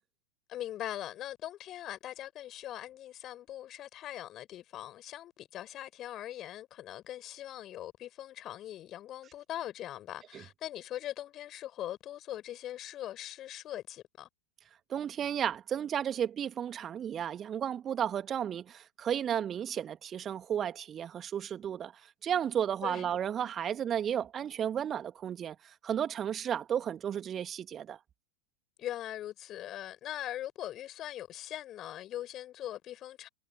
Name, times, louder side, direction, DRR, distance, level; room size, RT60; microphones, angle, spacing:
voice 1, 0.5-14.3 22.8-23.0 28.8-33.3, left 12 dB, 30° left, 6.8 m, -41 dB
voice 2, 14.9-28.0, right 9 dB, 25° right, 2.5 m, -33 dB
figure-of-eight pair, 90°, 0 cm